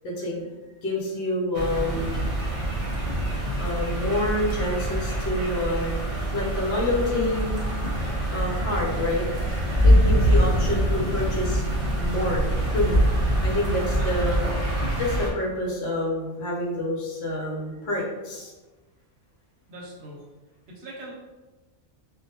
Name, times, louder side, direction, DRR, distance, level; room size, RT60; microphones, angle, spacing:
voice 1, 0.0-0.5 0.8-2.2 3.6-7.6 8.3-9.3 9.8-11.6 12.0-13.0 13.4-14.4 15.0-18.5, left 1 dB, 65° left, -3 dB, 0.9 m, -28 dB
sound 1, 1.5-15.3, equal, 45° right, 0.5 m, -24 dB
voice 2, 8.3-8.6 10.1-10.4 13.9-14.3 19.7-20.2 20.8-21.1, right 1 dB, 70° right, -3 dB, 0.8 m, -41 dB
2.3 x 2.1 x 2.7 m, 1.2 s
omnidirectional pair, 1.2 m